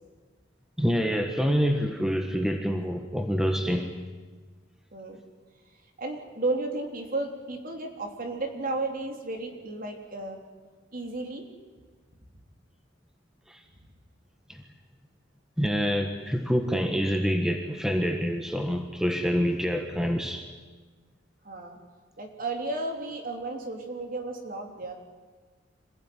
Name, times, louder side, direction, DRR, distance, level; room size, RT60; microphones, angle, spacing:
voice 1, 0.8-3.9 13.5-13.6 14.5-14.6 15.6-20.5, equal, 5° right, 4 dB, 1.4 m, -26 dB
voice 2, 6.0-10.4 10.9-11.4 21.4-21.8 22.2-24.9, right 2 dB, 45° right, 3 dB, 3.4 m, -33 dB
26.5 x 16.0 x 9.5 m, 1.4 s
head